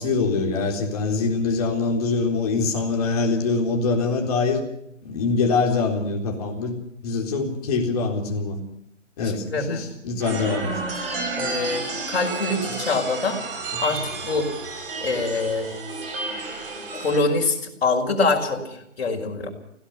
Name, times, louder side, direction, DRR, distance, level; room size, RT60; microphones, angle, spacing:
voice 1, 0.0-4.6 5.0-6.8 7.0-8.6 9.2-10.8 13.7-14.0, left 4 dB, 30° left, 2 dB, 3.9 m, -24 dB
voice 2, 9.2-9.9 11.4-13.4 13.8-14.5 15.0-15.7 16.9-19.5, left 3 dB, 50° left, 2 dB, 5.5 m, -25 dB
sound 1, 10.2-17.2, right 3 dB, 45° right, 5.8 m, -31 dB
25.5 x 17.0 x 5.9 m, 0.74 s
figure-of-eight pair, 145°, 38 cm